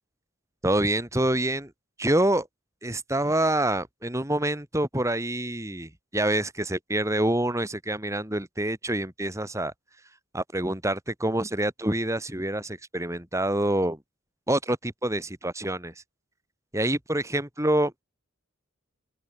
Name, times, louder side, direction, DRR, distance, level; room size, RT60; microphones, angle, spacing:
voice 1, 0.6-1.7 2.0-2.5 2.8-9.7 10.3-14.0 14.5-15.9 16.7-17.9, right 1 dB, 15° right, 3.9 m, -26 dB
open air
head